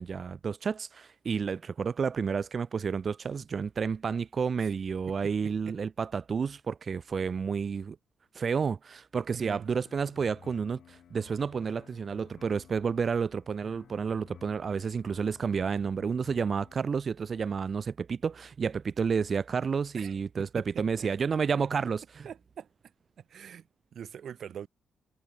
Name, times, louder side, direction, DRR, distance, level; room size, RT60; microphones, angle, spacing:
voice 1, 0.0-8.0 8.3-22.3, right 6 dB, 40° right, 0.7 m, -30 dB
sound 1, 9.3-16.8, left 9 dB, 65° left, 7.8 m, -55 dB
voice 2, 9.3-9.7 20.0-21.1 22.2-22.7 23.2-23.7 23.9-24.7, right 8 dB, 60° right, 2.3 m, -43 dB
cardioid pair, 130°, 0 cm